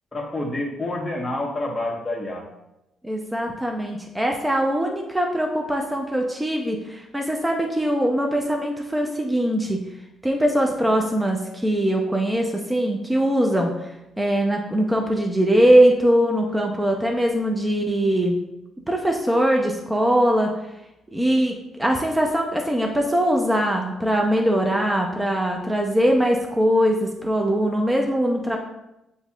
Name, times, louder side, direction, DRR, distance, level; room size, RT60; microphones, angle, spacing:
voice 1, 0.1-2.4, left 1 dB, 20° left, -1 dB, 1.1 m, -28 dB
voice 2, 3.0-9.8 10.2-13.9 14.2-18.4 18.9-20.5 21.1-28.6, equal, 10° right, 1 dB, 0.6 m, -21 dB
7.8 x 2.7 x 2.3 m, 0.89 s
cardioid pair, 90°, 0 cm